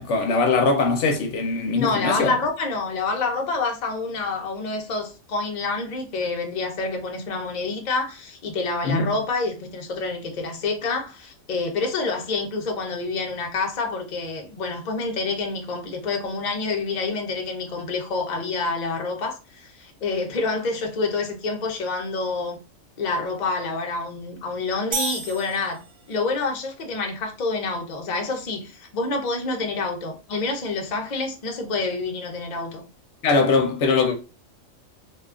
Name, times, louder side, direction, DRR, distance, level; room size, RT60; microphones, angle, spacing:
voice 1, 0.0-2.4 8.8-9.1 33.2-34.2, left 3 dB, 65° left, 0.9 m, -21 dB
voice 2, 1.8-22.6 23.0-25.8 26.1-32.8, left 3 dB, 50° left, 0.5 m, -27 dB
sound 1, 24.9-26.3, right 4 dB, 70° right, 1.0 m, -31 dB
2.7 x 2.3 x 2.3 m
omnidirectional pair, 1.4 m